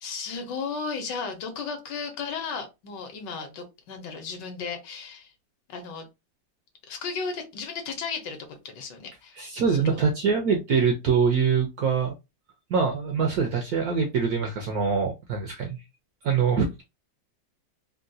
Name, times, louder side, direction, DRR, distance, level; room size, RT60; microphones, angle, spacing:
voice 1, 0.0-5.3 5.7-6.0 6.9-9.4 9.7-10.0, left 5 dB, 70° left, 1.3 m, -35 dB
voice 2, 9.3-12.1 12.7-15.8 16.2-16.8, right 6 dB, 70° right, 0.9 m, -24 dB
3.7 x 2.2 x 2.6 m
omnidirectional pair, 2.1 m